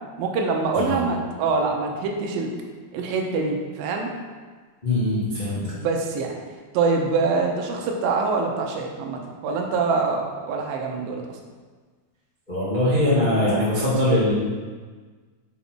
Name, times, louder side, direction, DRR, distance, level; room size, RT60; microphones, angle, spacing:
voice 1, 0.2-2.5 2.9-4.1 5.6-6.3 6.7-11.2, right 4 dB, 80° right, 2 dB, 2.4 m, -25 dB
voice 2, 4.8-5.7 12.5-14.3, left 1 dB, 90° left, -11 dB, 0.4 m, -22 dB
5.8 x 4.1 x 4.4 m, 1.4 s
omnidirectional pair, 4.2 m